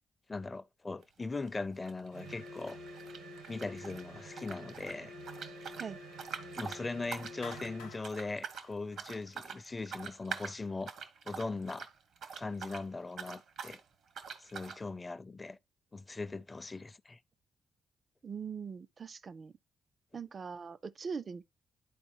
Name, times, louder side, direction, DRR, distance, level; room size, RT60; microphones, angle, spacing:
voice 1, 0.3-2.8 3.5-5.1 6.6-10.9 11.3-11.9 12.4-13.8 14.4-15.6 15.9-17.2, left 3 dB, 30° left, 0.5 m, -40 dB
sound 1, 1.0-1.2 1.5-4.0 4.3-12.9 13.1-13.8 14.1-14.8, right 6 dB, 70° right, 0.9 m, -45 dB
sound 2, 2.1-8.0, equal, 90° right, 1.3 m, -48 dB
Clapping, 7.4-9.7, left 6 dB, 85° left, 0.7 m, -51 dB
voice 2, 18.2-19.6 20.1-21.4, right 6 dB, 50° right, 0.4 m, -41 dB
11.0 x 4.2 x 2.8 m
hypercardioid pair, 45°, 0 cm